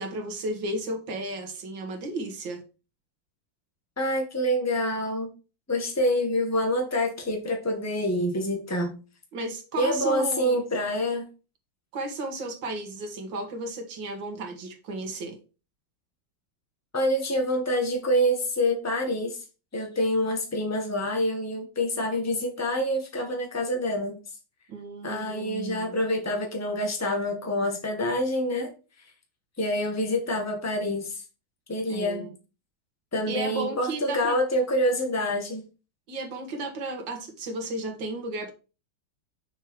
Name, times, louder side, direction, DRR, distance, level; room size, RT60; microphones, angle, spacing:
voice 1, 0.0-2.6 9.3-10.6 11.9-15.4 24.7-26.0 31.9-32.3 33.2-34.4 36.1-38.5, right 2 dB, 75° right, 5 dB, 2.1 m, -34 dB
voice 2, 4.0-5.3 5.7-8.9 9.8-11.3 16.9-19.4 19.7-24.2 25.0-28.7 29.6-31.2 31.7-32.3 33.1-35.6, equal, 10° left, 2 dB, 1.4 m, -26 dB
6.6 x 4.7 x 4.6 m, 0.33 s
omnidirectional pair, 2.1 m